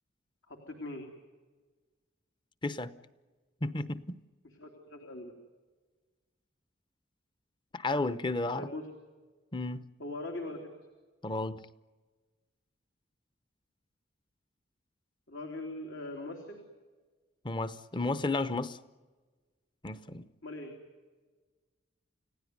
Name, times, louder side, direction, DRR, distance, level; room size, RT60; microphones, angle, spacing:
voice 1, 0.5-1.1 4.6-5.3 8.5-8.9 10.0-10.6 15.3-16.6 20.4-20.7, left 2 dB, 75° left, 3.3 m, -41 dB
voice 2, 2.6-3.0 3.6-4.2 7.7-8.7 9.5-9.9 11.2-11.6 17.4-18.8 19.8-20.3, left 2 dB, 25° left, 0.8 m, -33 dB
30.0 x 16.5 x 9.5 m
head